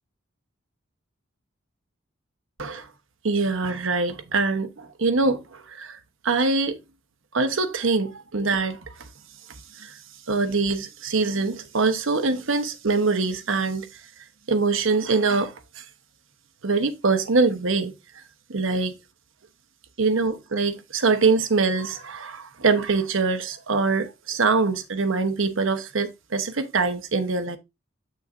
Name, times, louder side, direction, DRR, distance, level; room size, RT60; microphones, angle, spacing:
voice 1, 3.2-6.0 6.2-6.8 7.3-9.1 9.7-10.0 10.3-14.0 14.5-15.8 16.6-18.2 18.5-19.0 20.0-27.6, right 4 dB, 75° right, 0.9 m, -24 dB
7.7 x 6.4 x 2.5 m
head